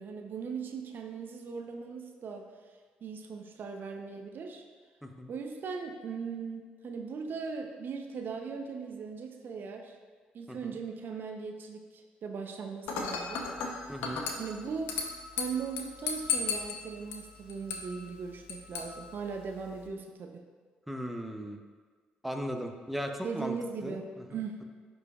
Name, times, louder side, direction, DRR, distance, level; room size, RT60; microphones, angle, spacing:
voice 1, 0.0-2.5 3.0-4.6 5.3-10.0 10.3-13.4 14.4-14.9 15.3-20.4 23.2-24.6, right 5 dB, 55° right, 4 dB, 0.7 m, -39 dB
Dishes pots and pans / Glass, 12.9-19.9, left 5 dB, 70° left, 0.8 m, -37 dB
voice 2, 13.9-14.2 20.9-21.6 22.2-23.5 23.8-24.0, equal, ahead, 3 dB, 0.8 m, -37 dB
10.5 x 5.0 x 2.4 m, 1.5 s
hypercardioid pair, 50°, 4 cm